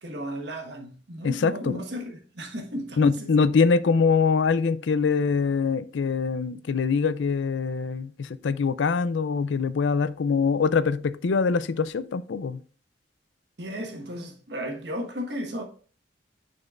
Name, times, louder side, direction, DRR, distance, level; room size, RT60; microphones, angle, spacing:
voice 1, 0.0-3.3 13.6-15.6, equal, 60° right, 1.3 m, -34 dB
voice 2, 1.2-1.8 3.0-12.6, left 5 dB, 75° left, 0.4 m, -23 dB
9.5 x 4.3 x 2.4 m
head